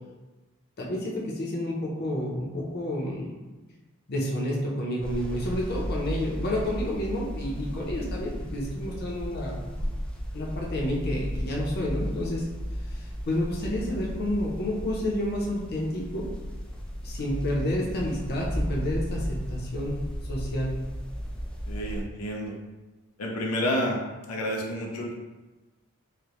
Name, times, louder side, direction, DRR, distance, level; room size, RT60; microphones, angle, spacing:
voice 1, 0.8-3.3 4.1-9.6 10.3-12.5 12.9-16.3 17.0-20.7, left 1 dB, 45° left, -3 dB, 0.7 m, -30 dB
sound 1, 5.0-22.0, equal, 5° left, 0.3 m, -34 dB
voice 2, 21.7-22.5 23.2-24.0 24.3-25.1, equal, 90° left, -1 dB, 0.6 m, -29 dB
4.8 x 2.2 x 2.9 m, 1.2 s
head